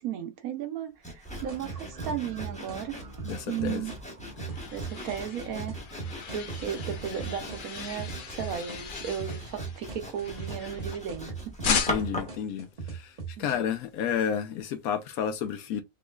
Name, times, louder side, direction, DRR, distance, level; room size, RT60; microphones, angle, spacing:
voice 1, 0.0-3.0 3.5-3.9 4.7-5.8 6.3-11.5 13.4-13.6, right 8 dB, 70° right, 1.0 m, -35 dB
Sawing, 1.0-12.4, left 1 dB, 5° left, 0.7 m, -41 dB
sound 1, 1.3-13.6, right 5 dB, 30° right, 0.8 m, -40 dB
voice 2, 3.2-3.8 11.7-15.8, left 8 dB, 70° left, 1.0 m, -31 dB
sound 2, 4.0-11.2 11.6-12.3, left 6 dB, 90° left, 0.4 m, -36 dB
3.7 x 3.1 x 2.3 m
omnidirectional pair, 1.7 m